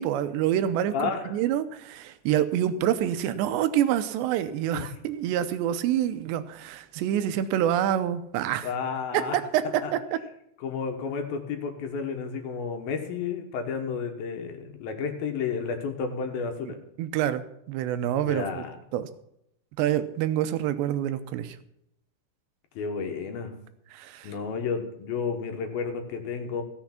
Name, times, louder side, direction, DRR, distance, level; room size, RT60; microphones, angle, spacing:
voice 1, 0.0-8.7 9.1-9.2 9.5-10.2 16.7-18.6 18.9-19.1 19.8-21.6 23.9-24.3, right 11 dB, 85° right, 11 dB, 3.0 m, -27 dB
voice 2, 0.9-1.4 4.7-4.9 8.6-9.4 9.8-9.9 10.6-16.8 18.2-18.8 22.8-23.5 24.2-26.6, left 5 dB, 65° left, 5 dB, 2.8 m, -31 dB
15.5 x 7.1 x 5.8 m, 0.77 s
omnidirectional pair, 5.0 m